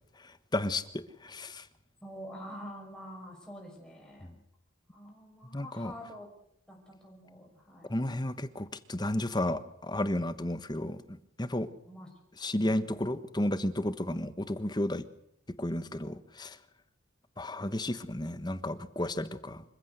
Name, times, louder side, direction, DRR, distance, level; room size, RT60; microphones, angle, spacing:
voice 1, 0.2-1.7 4.2-4.3 5.5-5.9 7.9-11.7 12.4-15.1 15.6-16.6 17.4-19.6, left 1 dB, 20° left, 13 dB, 1.3 m, -33 dB
voice 2, 2.0-4.4 4.9-6.3 6.7-8.0 11.9-12.1 14.7-14.8, equal, 5° left, -2 dB, 5.8 m, -47 dB
27.0 x 15.0 x 8.1 m, 0.74 s
head